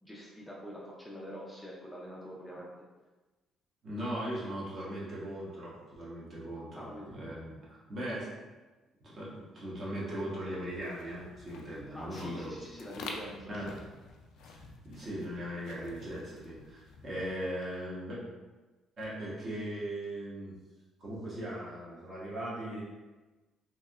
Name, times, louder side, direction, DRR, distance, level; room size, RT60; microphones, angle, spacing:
voice 1, 0.0-2.7 6.8-7.1 11.9-13.8, equal, 5° left, -5 dB, 0.4 m, -45 dB
voice 2, 3.8-8.3 9.0-12.5 13.5-13.7 14.5-14.6 14.8-18.2 19.0-20.6 21.0-22.8, right 1 dB, 40° right, -6 dB, 1.0 m, -39 dB
sound 1, 10.6-17.8, left 3 dB, 80° left, 0.4 m, -49 dB
3.2 x 2.7 x 2.4 m, 1.2 s
cardioid pair, 125°, 0 cm